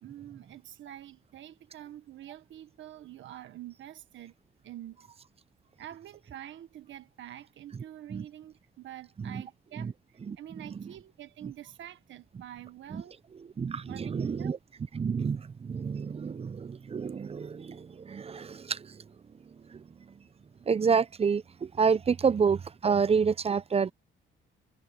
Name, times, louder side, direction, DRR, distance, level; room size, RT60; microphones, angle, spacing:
voice 1, 0.0-4.3 4.6-5.1 5.8-13.1 13.9-14.6, right 12 dB, 75° right, 1.6 m, -46 dB
voice 2, 13.6-14.6 14.9-19.0 19.7-19.8 20.7-23.9, right 6 dB, 30° right, 0.6 m, -28 dB
cardioid pair, 90°, 20 cm